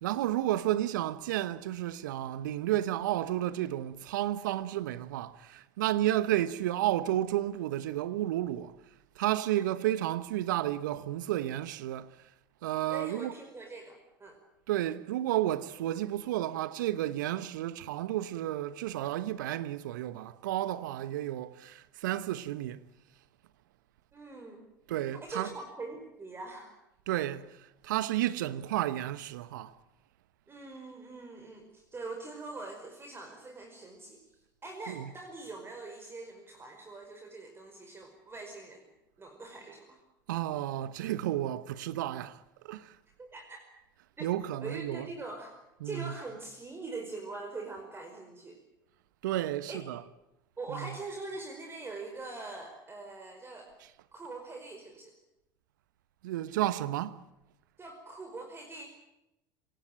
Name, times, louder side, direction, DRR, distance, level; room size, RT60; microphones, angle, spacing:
voice 1, 0.0-8.7 9.2-12.1 12.6-13.3 14.7-22.8 24.9-25.5 27.1-29.7 34.9-35.1 40.3-43.0 44.2-45.1 45.8-46.1 49.2-50.0 50.7-51.0 56.2-57.2, right 13 dB, 70° right, 1.1 m, -32 dB
voice 2, 12.9-14.4 24.1-24.6 25.2-26.8 30.5-38.9 39.2-40.0 43.2-43.6 44.2-44.3 44.6-45.5 45.8-48.6 49.7-49.8 50.6-53.7 54.1-55.1 57.8-58.9, right 3 dB, 20° right, 5.0 m, -43 dB
26.5 x 18.5 x 9.0 m
figure-of-eight pair, 70°, 11 cm